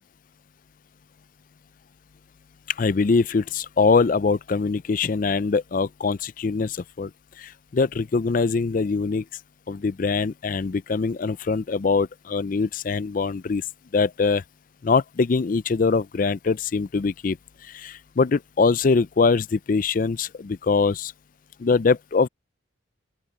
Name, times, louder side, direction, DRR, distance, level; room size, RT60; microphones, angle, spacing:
voice 1, 2.7-7.1 7.4-9.2 9.7-13.6 13.9-14.4 14.8-17.4 17.6-21.1 21.6-22.3, left 4 dB, 45° left, 0.4 m, -23 dB
open air
head